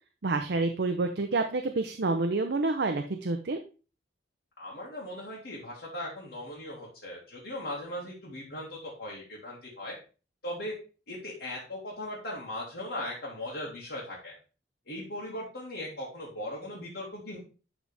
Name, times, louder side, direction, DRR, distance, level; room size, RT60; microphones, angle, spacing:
voice 1, 0.2-3.6, right 3 dB, 65° right, 6 dB, 0.6 m, -28 dB
voice 2, 4.6-10.0 10.4-10.7 11.1-14.3 14.9-17.4, left 1 dB, 65° left, -6 dB, 2.2 m, -38 dB
11.0 x 4.0 x 3.4 m, 0.35 s
head